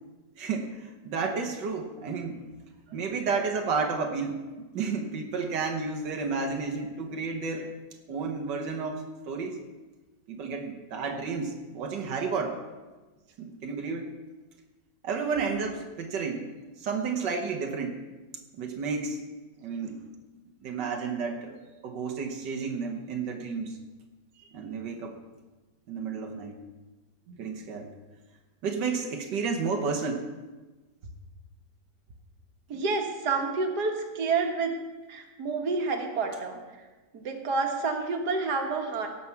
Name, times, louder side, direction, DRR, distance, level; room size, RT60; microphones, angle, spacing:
voice 1, 0.4-2.4 2.9-4.4 4.7-7.7 8.1-9.6 10.3-12.6 13.4-14.1 15.0-16.5 16.8-18.0 18.5-19.2 19.6-20.0 20.6-21.6 21.8-23.8 24.5-25.1 25.9-26.6 27.4-27.9 28.6-30.3, right 5 dB, 90° right, 3 dB, 1.8 m, -31 dB
voice 2, 32.7-34.7 35.1-36.6 37.1-39.1, right 4 dB, 65° right, 3 dB, 2.0 m, -29 dB
17.0 x 5.8 x 7.1 m, 1.2 s
omnidirectional pair, 1.9 m